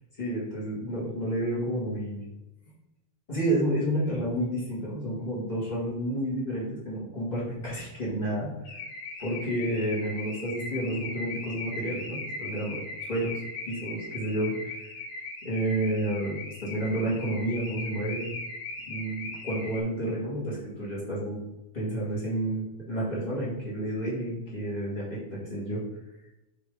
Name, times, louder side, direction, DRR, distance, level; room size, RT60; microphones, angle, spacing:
voice 1, 0.2-2.2 3.3-8.8 9.2-12.8 13.1-13.4 13.6-14.9 15.4-18.3 18.9-21.4 21.7-25.8, right 1 dB, 40° left, -6 dB, 0.6 m, -30 dB
Car / Alarm, 8.7-19.8, left 3 dB, 85° left, 3.3 m, -39 dB
5.9 x 4.1 x 5.0 m, 0.94 s
omnidirectional pair, 4.2 m